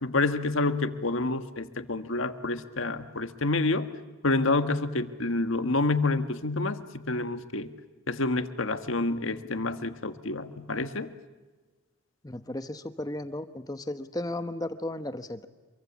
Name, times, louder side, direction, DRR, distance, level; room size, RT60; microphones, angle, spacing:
voice 1, 0.0-3.9 4.2-7.7 8.1-11.1, left 2 dB, 80° left, 9 dB, 1.6 m, -28 dB
voice 2, 12.2-15.5, left 1 dB, 20° left, 9 dB, 1.0 m, -35 dB
27.0 x 23.5 x 7.3 m, 1.3 s
head